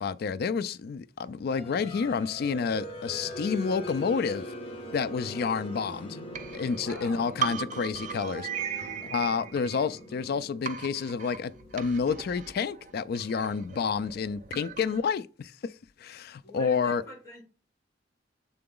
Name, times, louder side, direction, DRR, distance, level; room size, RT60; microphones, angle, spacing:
voice 1, 0.0-4.5 4.9-6.2 6.5-8.8 9.1-15.7 16.0-17.0, left 5 dB, 55° left, 0.3 m, -29 dB
sound 1, 1.5-14.0, left 1 dB, 35° left, 1.5 m, -43 dB
sound 2, 6.3-10.3 10.7-15.1, right 7 dB, 45° right, 0.5 m, -38 dB
voice 2, 6.8-7.7 8.8-9.1 16.4-17.4, left 1 dB, 20° left, 2.8 m, -45 dB
6.8 x 3.9 x 3.7 m
head